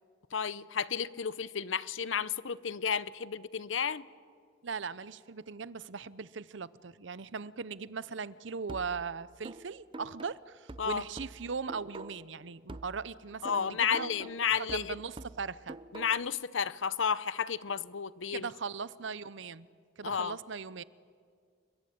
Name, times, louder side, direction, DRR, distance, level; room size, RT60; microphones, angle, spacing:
voice 1, 0.3-4.1 10.8-11.0 13.4-15.0 15.9-18.5 20.0-20.4, left 7 dB, 80° left, 0.8 m, -32 dB
voice 2, 4.6-14.1 14.7-15.8 18.3-19.7 20.0-20.8, right 5 dB, 70° right, 0.7 m, -39 dB
sound 1, 8.7-12.4 12.7-16.4, right 2 dB, 25° right, 0.6 m, -47 dB
29.5 x 22.0 x 8.6 m
head